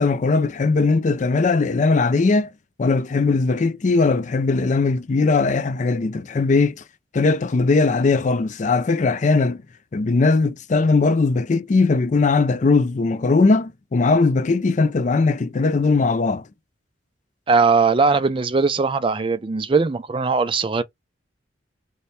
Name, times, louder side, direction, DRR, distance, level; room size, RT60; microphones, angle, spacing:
voice 1, 0.0-2.5 2.8-6.8 7.1-9.6 9.9-16.4, left 3 dB, 40° left, 0.4 m, -19 dB
voice 2, 17.5-20.8, right 4 dB, 25° right, 0.4 m, -19 dB
4.2 x 2.2 x 3.2 m
head